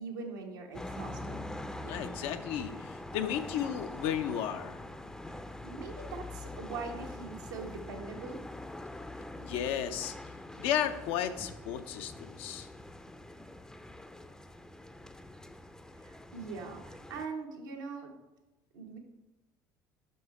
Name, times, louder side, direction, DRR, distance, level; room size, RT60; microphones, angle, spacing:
voice 1, 0.0-1.3 5.6-8.4 16.0-18.1 18.7-19.0, right 4 dB, 85° right, 1 dB, 1.1 m, -42 dB
sound 1, 0.7-17.2, left 1 dB, 5° left, 0.5 m, -44 dB
voice 2, 1.8-4.8 9.4-10.1 10.6-12.7, left 10 dB, 70° left, 8 dB, 0.6 m, -34 dB
5.6 x 5.4 x 4.8 m, 1.0 s
hypercardioid pair, 70°, 10 cm